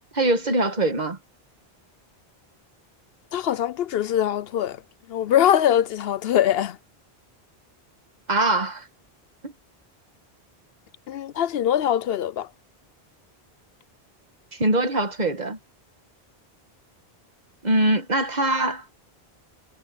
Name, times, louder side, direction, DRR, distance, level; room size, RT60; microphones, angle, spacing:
voice 1, 0.1-1.2 8.3-8.9 9.4-9.5 14.5-15.6 17.6-18.8, right 2 dB, 45° right, 1.6 m, -22 dB
voice 2, 3.3-4.8 5.1-6.8 11.1-12.5, left 10 dB, 70° left, 0.8 m, -22 dB
omnidirectional pair, 1.0 m